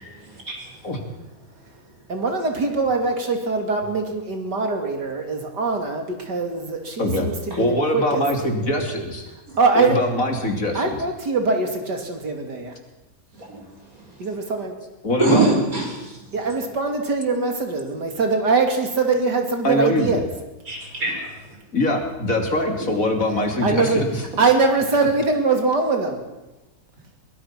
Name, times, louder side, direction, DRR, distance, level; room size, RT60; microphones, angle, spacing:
voice 1, 0.2-0.6 9.5-9.6 13.6-14.0 15.2-16.2 20.7-21.3, right 2 dB, 50° right, -1 dB, 6.5 m, -23 dB
voice 2, 2.1-8.2 9.6-10.0 10.7-12.7 14.2-14.7 16.3-20.2 23.6-24.0 24.4-26.2, right 3 dB, 70° right, 4 dB, 3.5 m, -22 dB
voice 3, 7.0-7.3 7.6-9.3 9.7-11.0 15.0-15.6 19.6-20.2 21.7-24.2, left 1 dB, 50° left, 4 dB, 3.4 m, -23 dB
23.0 x 20.5 x 6.1 m, 1.1 s
omnidirectional pair, 1.9 m